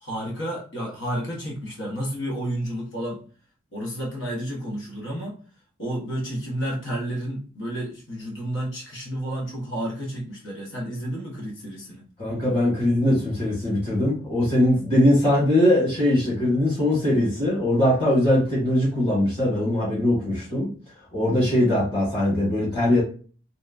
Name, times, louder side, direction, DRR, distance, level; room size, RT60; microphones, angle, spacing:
voice 1, 0.0-3.2 3.7-5.4 5.8-12.0, equal, 60° left, -2 dB, 1.1 m, -31 dB
voice 2, 12.2-20.7 21.1-23.0, left 1 dB, 30° left, -8 dB, 1.6 m, -21 dB
3.3 x 2.9 x 2.4 m, 0.39 s
head